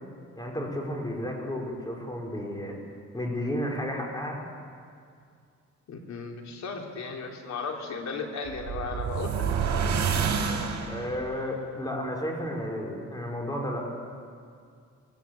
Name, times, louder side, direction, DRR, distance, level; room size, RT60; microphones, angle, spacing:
voice 1, 0.4-2.8 3.1-4.4 10.9-13.9, left 1 dB, 15° left, -1 dB, 5.6 m, -32 dB
voice 2, 5.9-9.5, left 4 dB, 65° left, 2 dB, 3.4 m, -35 dB
sound 1, 8.4-11.3, right 6 dB, 70° right, 4.2 m, -28 dB
21.5 x 18.0 x 8.3 m, 2.3 s
cardioid pair, 90°, 30 cm